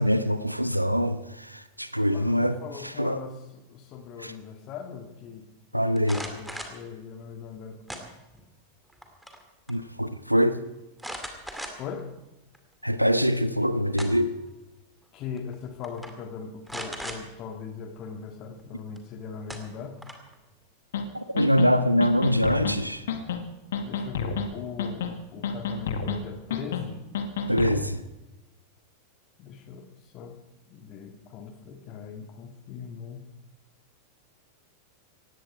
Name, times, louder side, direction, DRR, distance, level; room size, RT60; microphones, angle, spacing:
voice 1, 0.0-2.6 2.8-3.2 4.2-4.3 5.7-6.2 9.7-10.6 12.8-14.3 21.1-23.1 27.5-28.0, equal, 90° right, 13 dB, 0.7 m, -24 dB
voice 2, 2.1-5.5 5.9-7.8 11.8-12.1 15.1-20.0 23.8-27.0 27.5-27.8 29.4-30.4 30.7-33.3, left 6 dB, 35° left, 5 dB, 1.8 m, -40 dB
sound 1, 6.0-6.8 7.9-8.5 8.9-9.4 9.7-9.8 11.0-12.0 12.5-12.6 13.7-14.4 15.4-15.5 15.8-16.1 16.7-17.2 19.0-19.1 19.5-20.3, equal, ahead, 2.4 m, -38 dB
sound 2, 20.9-21.0 21.4-21.7 22.0-22.8 23.1-23.4 23.7-24.5 24.8-25.2 25.4-26.2 26.5-26.8 27.1-27.8, left 6 dB, 60° left, 1.7 m, -30 dB
18.5 x 16.0 x 4.9 m, 0.99 s
figure-of-eight pair, 90°, 0 cm